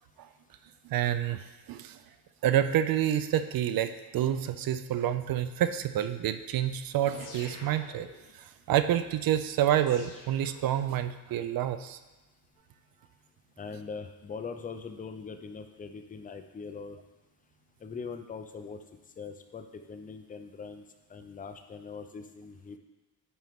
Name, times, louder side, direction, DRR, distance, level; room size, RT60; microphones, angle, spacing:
voice 1, 0.9-1.4 1.7-2.0 2.4-8.1 8.7-12.0, right 11 dB, 55° right, 11 dB, 0.5 m, -28 dB
sound 1, 7.1-8.4 9.9-11.2, left 3 dB, 45° left, 1.5 m, -48 dB
voice 2, 13.6-17.0 17.8-18.8 19.2-20.8 21.1-22.8, left 5 dB, 20° left, 7 dB, 0.5 m, -41 dB
9.5 x 4.4 x 3.5 m, 1.1 s
cardioid pair, 120°, 43 cm